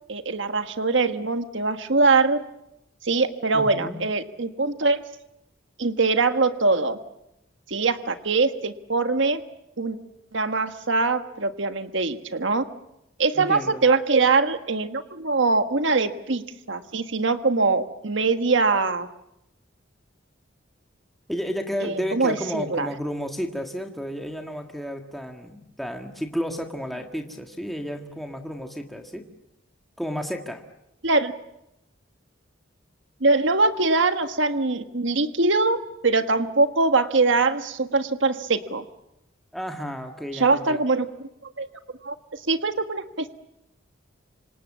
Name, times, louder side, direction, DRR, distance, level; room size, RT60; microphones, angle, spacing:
voice 1, 0.1-2.4 3.0-5.0 5.8-7.0 7.7-9.4 9.8-10.0 10.3-12.6 13.2-19.1 21.8-22.9 31.0-31.3 33.2-35.8 36.0-38.8 40.3-41.0 41.6-41.7 42.0-43.3, right 3 dB, 70° right, 8 dB, 1.4 m, -22 dB
voice 2, 3.5-4.0 13.3-13.8 21.3-29.3 30.0-30.6 39.5-40.8, equal, ahead, 3 dB, 1.7 m, -32 dB
26.5 x 26.5 x 7.4 m, 0.86 s
head